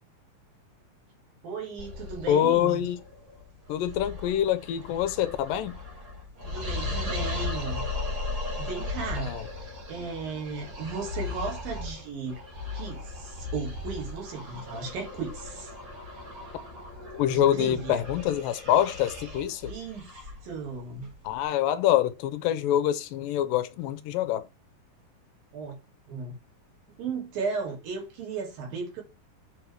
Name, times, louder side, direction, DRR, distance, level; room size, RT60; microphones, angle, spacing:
voice 1, 1.4-2.8 6.4-7.8 8.6-9.3 9.6-12.4 12.7-15.7 17.3-18.0 19.7-20.1 20.4-21.1 25.5-25.8 26.1-26.3 27.0-29.0, right 5 dB, 75° right, 4.5 m, -35 dB
sound 1, 1.8-21.4, left 3 dB, 30° right, 3.3 m, -37 dB
voice 2, 2.3-3.0 3.7-5.7 9.2-9.4 17.2-19.6 21.3-24.4, left 11 dB, 85° left, 2.2 m, -25 dB
7.2 x 5.0 x 4.6 m
omnidirectional pair, 4.1 m